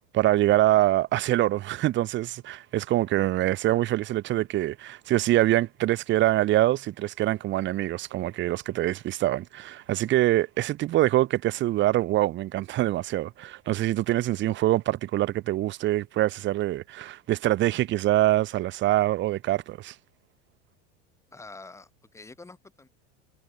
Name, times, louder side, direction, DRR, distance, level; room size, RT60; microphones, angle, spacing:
voice 1, 0.1-19.9, right 15 dB, 30° right, 1.3 m, -24 dB
voice 2, 21.3-22.9, left 3 dB, 10° left, 3.8 m, -46 dB
supercardioid pair, 145°, 36 cm